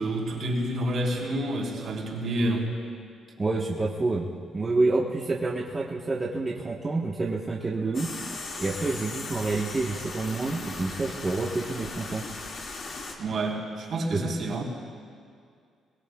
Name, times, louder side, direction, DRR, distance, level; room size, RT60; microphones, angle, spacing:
voice 1, 0.0-2.7 13.2-14.6, right 1 dB, 60° right, -2 dB, 3.8 m, -28 dB
voice 2, 3.4-8.1 8.6-12.3 14.1-14.2, right 3 dB, 25° right, -3 dB, 1.2 m, -28 dB
sound 1, 7.9-13.2, left 3 dB, 55° left, 2.2 m, -38 dB
22.5 x 21.0 x 2.4 m, 2.2 s
cardioid pair, 90°, 0 cm